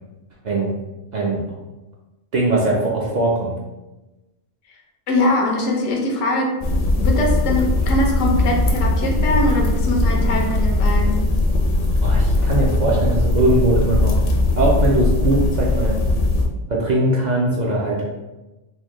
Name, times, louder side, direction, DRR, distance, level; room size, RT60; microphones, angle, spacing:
voice 1, 0.4-0.8 1.1-1.4 2.3-3.5 12.0-14.2 14.6-16.0 16.7-18.0, right 1 dB, 60° right, -3 dB, 0.4 m, -20 dB
voice 2, 5.1-6.6 7.0-11.2, left 2 dB, 85° left, 1 dB, 1.1 m, -22 dB
sound 1, 6.6-16.5, left 2 dB, 60° left, 0.6 m, -19 dB
4.3 x 2.1 x 3.0 m, 1.1 s
omnidirectional pair, 1.3 m